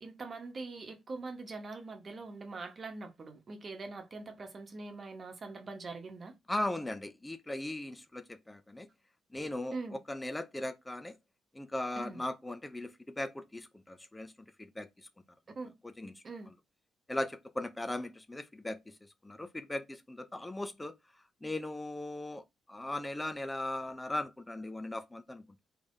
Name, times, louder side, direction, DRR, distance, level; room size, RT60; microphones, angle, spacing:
voice 1, 0.0-6.3 9.7-10.0 12.0-12.2 15.6-15.7 16.2-16.5, right 3 dB, 45° right, 1.1 m, -43 dB
voice 2, 6.5-8.9 9.3-11.2 11.5-14.3 14.6-15.1 15.8-16.1 17.1-19.0 19.2-20.9 21.4-25.6, left 1 dB, 15° left, 0.5 m, -38 dB
3.4 x 3.3 x 2.6 m
supercardioid pair, 55°, 0 cm